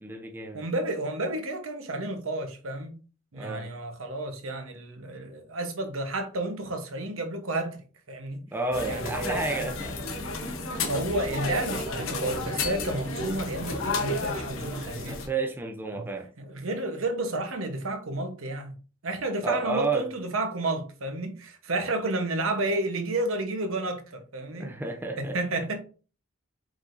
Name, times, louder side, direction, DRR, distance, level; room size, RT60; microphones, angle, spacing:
voice 1, 0.0-0.7 3.3-3.7 8.5-10.3 15.0-16.3 19.4-20.1 24.5-25.4, right 3 dB, 10° right, 0.5 m, -31 dB
voice 2, 0.5-3.0 3.3-8.4 8.9-9.5 10.9-15.2 15.9-16.1 16.4-18.7 19.0-24.7 25.2-25.8, right 2 dB, 80° right, 1.0 m, -31 dB
sound 1, 8.7-15.3, left 2 dB, 75° left, 0.9 m, -32 dB
4.7 x 4.0 x 2.5 m
head